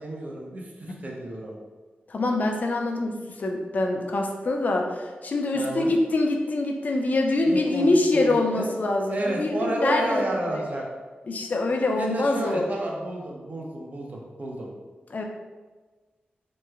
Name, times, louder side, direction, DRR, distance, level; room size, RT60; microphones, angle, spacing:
voice 1, 0.0-1.5 5.5-5.9 7.4-8.7 9.1-10.9 12.0-14.7, right 1 dB, 50° right, -1 dB, 0.6 m, -31 dB
voice 2, 2.1-10.6 11.3-12.7 15.1-15.2, left 2 dB, 50° left, 2 dB, 0.4 m, -25 dB
3.0 x 2.2 x 3.4 m, 1.3 s
wide cardioid pair, 105°, 4 cm